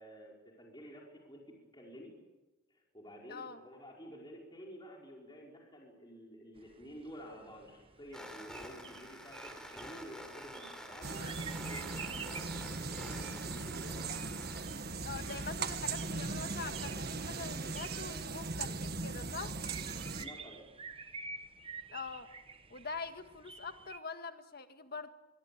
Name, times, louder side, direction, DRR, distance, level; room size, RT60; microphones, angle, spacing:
voice 1, 0.0-2.1 2.7-14.1 20.2-20.6, equal, 20° left, -1 dB, 5.2 m, -51 dB
voice 2, 3.3-3.6 15.0-19.5 21.9-22.3 22.7-25.1, left 4 dB, 45° left, 8 dB, 1.8 m, -44 dB
sound 1, 6.6-24.0, right 4 dB, 25° right, 1.2 m, -51 dB
sound 2, 8.1-14.6, equal, 5° left, 3.7 m, -49 dB
sound 3, 11.0-20.3, right 4 dB, 45° right, 1.6 m, -39 dB
25.5 x 22.5 x 8.7 m, 1.1 s
head